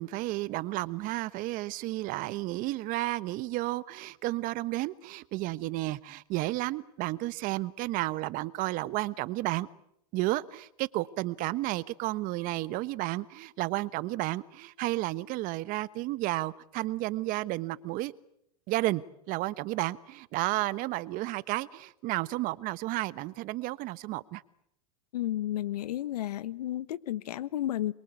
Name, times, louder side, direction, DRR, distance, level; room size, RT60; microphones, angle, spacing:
voice 1, 0.0-9.7 10.1-18.1 18.7-19.0 19.3-24.4, right 18 dB, 45° right, 17 dB, 1.1 m, -32 dB
voice 2, 25.1-27.9, left 13 dB, 80° left, 18 dB, 1.2 m, -32 dB
27.5 x 23.0 x 8.3 m, 0.75 s
hypercardioid pair, 120°, 20 cm